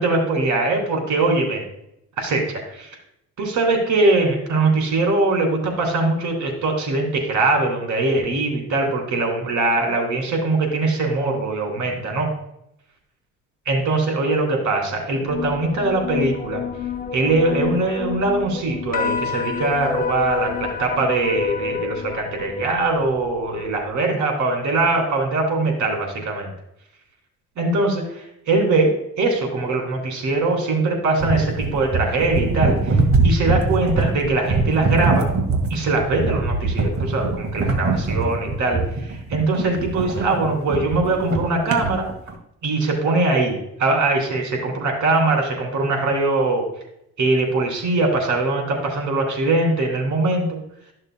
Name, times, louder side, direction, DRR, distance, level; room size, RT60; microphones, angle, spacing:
voice 1, 0.0-1.6 2.2-2.9 3.4-12.3 13.6-16.6 17.1-26.5 27.6-33.0 33.2-35.3 35.7-42.1 42.6-46.6 47.2-50.6, right 2 dB, 80° right, 2 dB, 3.0 m, -21 dB
sound 1, 15.3-23.9, left 6 dB, 30° left, 0.9 m, -29 dB
sound 2, 31.2-42.3, right 3 dB, 45° right, 1.8 m, -22 dB
13.5 x 6.5 x 2.2 m, 0.78 s
cardioid pair, 90°, 30 cm